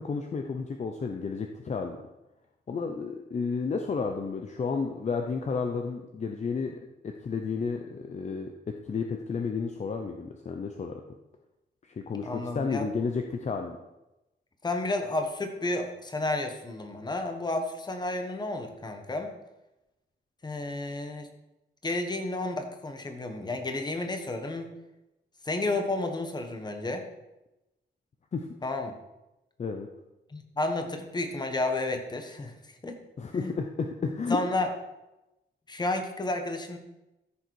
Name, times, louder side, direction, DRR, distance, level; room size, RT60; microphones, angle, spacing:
voice 1, 0.0-2.0 2.7-8.5 8.8-11.0 12.1-13.8 28.3-28.5 29.6-29.9 33.2-34.4, left 5 dB, 40° left, 4 dB, 0.7 m, -32 dB
voice 2, 12.2-12.9 14.6-19.3 20.4-21.3 21.8-24.7 25.4-27.0 28.6-28.9 30.3-32.5 32.8-33.0 33.3-33.5 34.3-34.7 35.7-36.8, left 2 dB, 25° left, 5 dB, 1.3 m, -31 dB
14.5 x 6.7 x 4.7 m, 0.98 s
wide cardioid pair, 155°, 18 cm